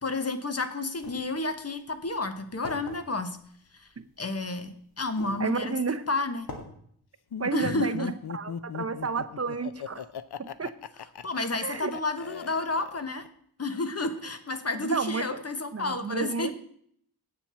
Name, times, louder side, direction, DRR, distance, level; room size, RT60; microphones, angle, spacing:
voice 1, 0.0-3.4 3.7-3.9 4.2-5.8 6.1-6.5 7.5-8.1 11.2-13.2 13.6-16.5, left 2 dB, 40° left, 9 dB, 1.1 m, -31 dB
sound 1, 1.0-1.2 2.0-2.1 2.7-3.0 4.2-4.3 5.0-5.4 5.9-6.0 6.5-6.7, left 2 dB, 65° left, 2.1 m, -40 dB
voice 2, 5.4-6.1 7.4-10.1 10.4-10.7 11.6-11.9 14.7-15.3 15.7-16.5, right 4 dB, 40° right, 10 dB, 0.7 m, -31 dB
Laughter, 7.3-13.3, left 8 dB, 85° left, 0.7 m, -38 dB
8.7 x 7.5 x 6.9 m, 0.63 s
wide cardioid pair, 95°, 38 cm